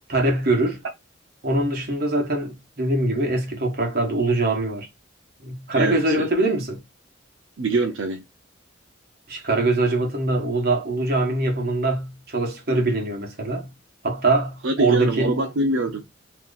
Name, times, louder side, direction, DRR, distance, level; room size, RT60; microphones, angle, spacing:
voice 1, 0.1-0.8 1.4-4.9 5.4-6.8 9.3-13.7 14.0-15.4, right 2 dB, 50° right, 1.1 m, -23 dB
voice 2, 5.7-6.3 7.6-8.2 14.6-16.0, right 2 dB, 80° right, 0.5 m, -24 dB
2.9 x 2.4 x 3.8 m
head